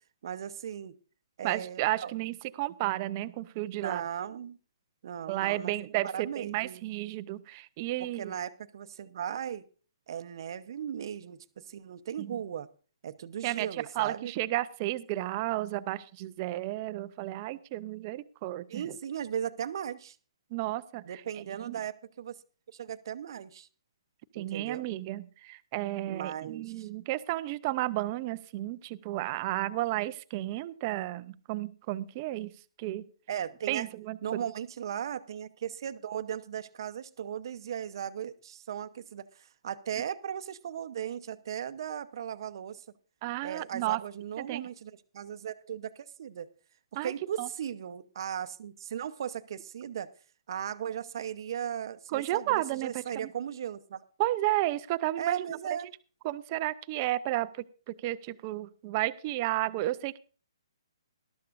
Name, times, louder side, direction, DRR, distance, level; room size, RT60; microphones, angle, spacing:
voice 1, 0.2-0.9 1.4-2.1 3.7-4.6 5.0-5.8 6.0-6.8 8.0-9.6 10.1-12.7 13.0-14.3 18.7-20.2 21.0-22.4 22.7-23.7 24.3-24.9 26.1-26.9 33.3-33.9 34.2-42.8 43.4-46.5 46.9-50.1 50.5-54.0 55.2-55.9, right 9 dB, 50° right, 12 dB, 0.8 m, -37 dB
voice 2, 1.4-4.0 5.3-8.3 12.2-12.4 13.4-13.7 14.0-18.9 20.5-21.2 21.6-21.8 24.3-32.5 32.8-33.0 33.7-34.4 43.2-44.0 44.4-44.7 46.9-47.1 47.4-47.5 52.1-53.3 54.2-55.5 56.2-60.2, right 17 dB, 30° right, 14 dB, 0.6 m, -32 dB
19.0 x 12.5 x 2.6 m, 0.37 s
hypercardioid pair, 155°, 3 cm